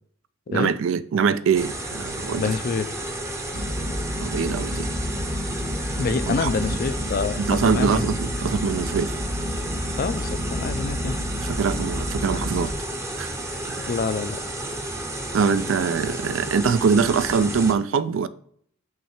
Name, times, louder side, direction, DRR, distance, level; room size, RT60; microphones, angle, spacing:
voice 1, 0.5-2.4 4.2-4.9 6.3-6.8 7.4-9.2 11.4-12.7 13.2-13.3 13.6-13.9 15.3-18.3, right 6 dB, 65° right, 0.3 m, -23 dB
sound 1, 1.5-17.7, right 1 dB, 15° right, 0.7 m, -32 dB
voice 2, 2.4-2.9 6.0-8.1 10.0-11.2 13.8-14.4, left 5 dB, 45° left, 0.3 m, -27 dB
sound 2, 3.5-12.7, left 1 dB, 85° right, 1.4 m, -30 dB
5.6 x 3.2 x 5.6 m
head